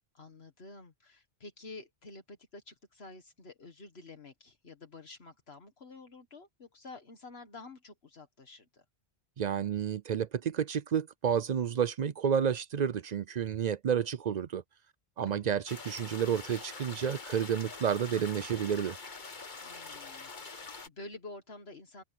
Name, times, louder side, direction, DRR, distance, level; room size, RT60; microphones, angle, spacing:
voice 1, 0.1-8.8 15.2-15.5 19.6-22.0, left 3 dB, 70° left, 1.9 m, -50 dB
voice 2, 9.4-14.6 15.2-19.0, right 8 dB, 55° right, 0.5 m, -30 dB
sound 1, 15.7-20.9, left 4 dB, 45° left, 1.6 m, -45 dB
omnidirectional pair, 1.1 m